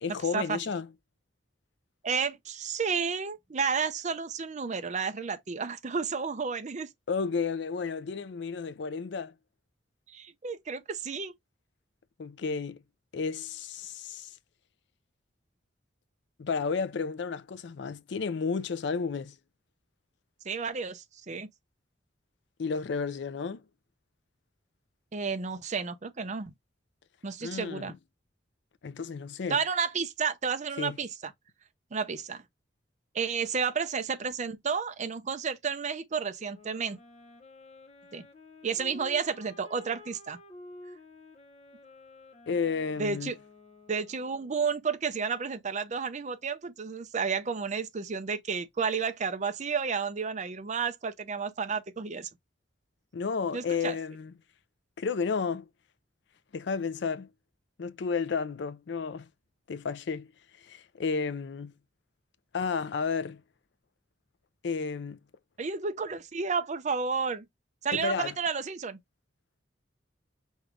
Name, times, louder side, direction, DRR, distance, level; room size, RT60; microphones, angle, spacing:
voice 1, 0.0-0.9 7.1-9.3 12.2-12.8 13.1-14.3 16.4-19.4 22.6-23.6 27.4-27.9 28.8-29.6 30.8-31.0 42.5-43.3 53.1-54.3 55.0-55.7 56.5-57.3 57.8-59.3 59.7-60.3 60.6-61.7 62.5-63.4 64.6-65.2 67.9-68.3, left 5 dB, 65° left, 0.4 m, -32 dB
voice 2, 2.0-6.9 10.1-11.3 20.4-21.5 25.1-26.5 27.2-27.9 29.5-31.3 31.9-32.4 33.1-37.0 38.1-38.2 38.6-40.4 43.0-43.4 43.9-52.3 53.5-54.0 65.6-67.5 67.8-69.0, right 5 dB, 40° right, 0.6 m, -31 dB
Wind instrument woodwind instrument, 36.4-44.7, left 2 dB, 35° left, 0.9 m, -51 dB
5.4 x 2.4 x 3.2 m
head